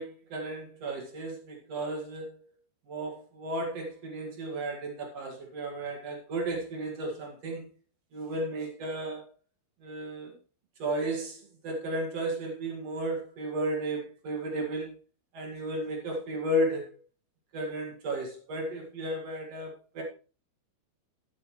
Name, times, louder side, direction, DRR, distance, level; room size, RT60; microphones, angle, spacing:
voice 1, 0.0-2.4 2.9-7.7 8.1-9.2 9.8-10.4 10.8-15.0 15.3-17.0 17.5-20.0, right 1 dB, 50° right, 1 dB, 2.0 m, -34 dB
12.0 x 8.7 x 3.1 m, 0.35 s
omnidirectional pair, 5.6 m